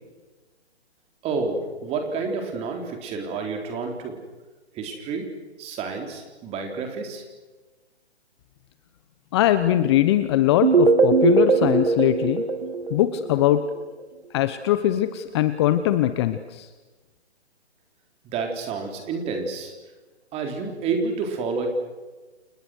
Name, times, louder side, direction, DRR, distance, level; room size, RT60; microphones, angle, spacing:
voice 1, 1.2-4.2 4.7-5.3 5.6-7.2 18.2-19.7 20.3-21.7, right 4 dB, 20° right, 3 dB, 3.9 m, -29 dB
voice 2, 9.3-12.4 12.9-13.6 14.3-16.7, left 12 dB, 25° left, 11 dB, 0.9 m, -21 dB
sound 1, 10.6-13.6, right 4 dB, 65° right, 3.1 m, -20 dB
29.5 x 26.0 x 6.4 m, 1.3 s
hypercardioid pair, 145°, 33 cm